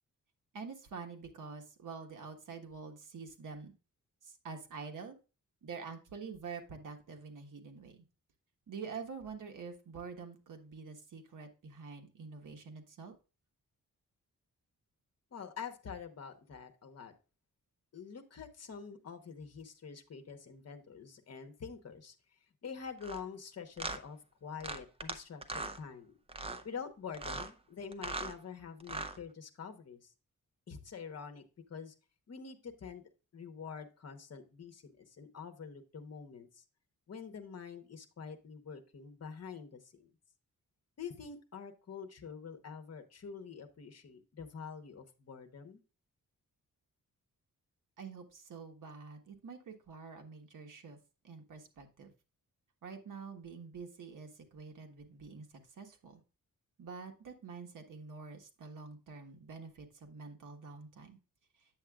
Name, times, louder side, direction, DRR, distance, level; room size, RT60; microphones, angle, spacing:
voice 1, 0.5-3.7 4.2-5.2 5.6-8.0 8.7-13.1 48.0-51.0 51.2-52.1 52.8-55.4 55.8-56.2 56.8-61.2, right 5 dB, 65° right, 4 dB, 1.3 m, -47 dB
voice 2, 15.3-17.1 17.9-22.1 22.6-26.1 26.6-30.1 30.7-31.4 31.7-31.9 32.3-36.6 37.1-40.1 41.0-45.8, left 6 dB, 50° left, 6 dB, 1.1 m, -46 dB
sound 1, 23.0-23.2 23.8-24.0 24.6-25.2 25.4-25.8 26.3-26.6 27.1-27.5 27.9-28.3 28.8-29.2, right 3 dB, 15° right, 0.6 m, -39 dB
8.6 x 7.4 x 2.4 m, 0.33 s
wide cardioid pair, 145°, 33 cm